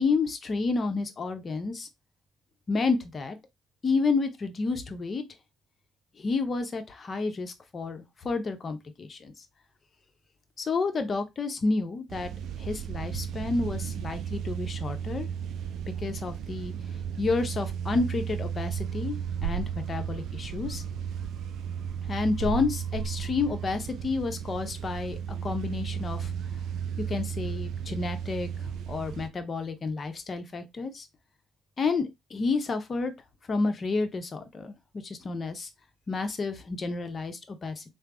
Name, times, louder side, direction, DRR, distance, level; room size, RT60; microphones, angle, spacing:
voice 1, 0.0-1.9 2.7-3.4 3.8-5.2 6.2-9.3 10.6-15.3 16.0-16.7 17.2-20.8 22.1-26.3 27.1-31.1 31.8-33.1 33.5-35.7 36.1-37.8, left 4 dB, 40° left, 0.7 m, -30 dB
sound 1, 12.1-29.3, right 8 dB, 60° right, 0.3 m, -34 dB
sound 2, 18.5-18.9 19.2-23.8, right 6 dB, 80° right, 0.7 m, -37 dB
3.3 x 2.0 x 3.7 m
hypercardioid pair, 50°, 0 cm